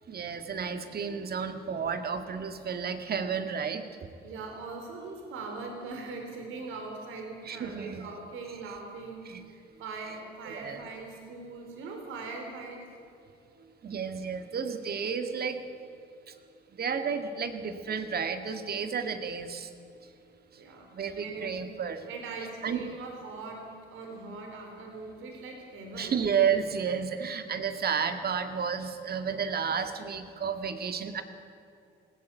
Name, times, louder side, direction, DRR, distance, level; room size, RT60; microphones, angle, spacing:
voice 1, 0.1-3.8 7.5-8.1 9.3-9.4 10.5-10.8 13.8-15.6 16.3-16.4 16.8-19.7 20.9-22.1 22.6-22.8 25.9-31.2, right 6 dB, 50° right, 8 dB, 2.0 m, -31 dB
voice 2, 4.2-12.9 20.6-20.9 21.1-21.6 22.1-26.2, right 3 dB, 85° right, 3 dB, 3.9 m, -41 dB
20.0 x 17.5 x 8.2 m, 2.6 s
cardioid pair, 90°, 20 cm